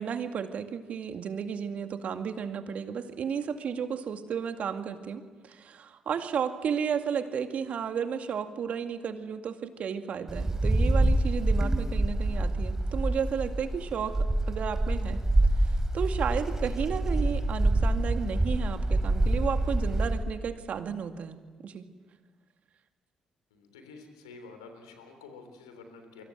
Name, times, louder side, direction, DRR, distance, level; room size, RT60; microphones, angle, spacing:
voice 1, 0.0-15.2 15.6-21.4 21.6-21.9, right 7 dB, 60° right, 7 dB, 2.2 m, -33 dB
Wind, 10.3-20.3, right 1 dB, 20° right, 3.5 m, -26 dB
voice 2, 23.5-26.2, left 4 dB, 90° left, 5 dB, 3.4 m, -49 dB
29.0 x 24.5 x 7.8 m, 1.3 s
hypercardioid pair, 45°, 3 cm